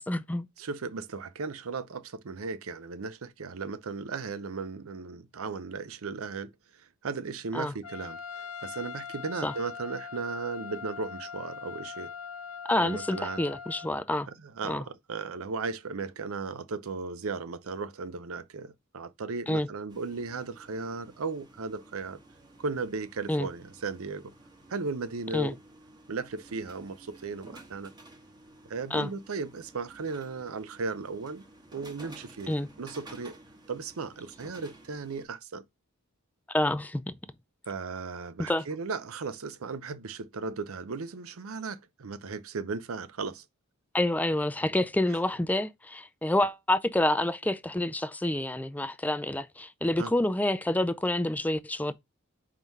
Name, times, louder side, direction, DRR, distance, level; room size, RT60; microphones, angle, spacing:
voice 1, 0.0-0.5 7.5-7.7 9.4-9.5 12.7-14.3 14.6-14.8 19.5-19.7 23.3-23.5 25.3-25.5 28.9-29.1 32.5-32.7 36.5-37.1 38.5-38.6 43.9-51.9, left 1 dB, 5° left, 0.4 m, -28 dB
voice 2, 0.6-12.1 12.7-13.4 14.3-22.2 22.6-24.3 24.7-25.6 26.1-27.9 28.7-31.4 31.7-33.4 33.7-35.6 37.7-43.4 50.0-50.1, right 4 dB, 75° right, 0.6 m, -36 dB
Trumpet, 7.8-13.9, left 6 dB, 80° left, 0.6 m, -41 dB
sound 1, 19.9-35.2, right 2 dB, 20° right, 1.2 m, -53 dB
4.7 x 3.7 x 5.3 m
head